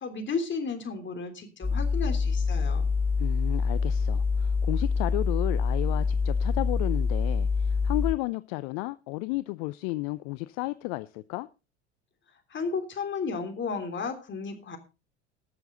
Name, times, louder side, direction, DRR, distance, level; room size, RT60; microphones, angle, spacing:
voice 1, 0.0-2.9 12.5-14.8, left 4 dB, 35° left, 3.4 m, -33 dB
sound 1, 1.6-8.1, left 5 dB, 5° left, 1.7 m, -26 dB
voice 2, 3.2-11.5, left 21 dB, 65° left, 0.6 m, -33 dB
20.0 x 7.0 x 3.8 m
hypercardioid pair, 75°, 34 cm